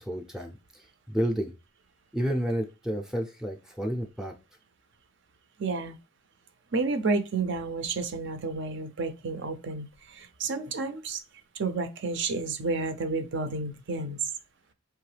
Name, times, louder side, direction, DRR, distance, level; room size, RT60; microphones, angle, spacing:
voice 1, 0.0-1.5 2.1-4.3, equal, 5° right, 0.5 m, -31 dB
voice 2, 5.6-6.0 6.7-11.2 11.5-14.2, right 3 dB, 60° right, 0.6 m, -31 dB
4.6 x 3.1 x 3.3 m
head